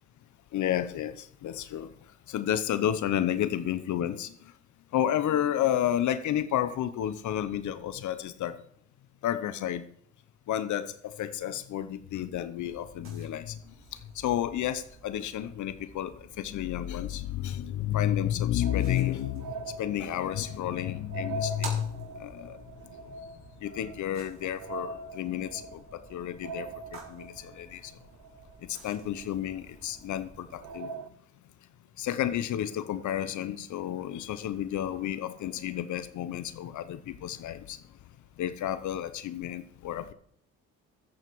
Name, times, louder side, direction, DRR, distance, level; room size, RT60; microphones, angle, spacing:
voice 1, 0.5-1.9 2.3-4.3 4.9-8.5 9.2-9.8 10.5-10.9 11.2-13.6 14.2-19.5 19.8-22.6 23.6-25.8 26.1-27.8 28.7-30.9 32.0-37.8 38.4-40.1, left 11 dB, 75° left, 12 dB, 0.9 m, -31 dB
sound 1, 12.6-30.7, right 4 dB, 45° right, 5.0 m, -50 dB
sound 2, 18.6-29.4 29.9-30.0 30.6-31.1, right 3 dB, 65° right, 1.0 m, -42 dB
14.5 x 8.1 x 4.7 m, 0.66 s
cardioid pair, 90°, 30 cm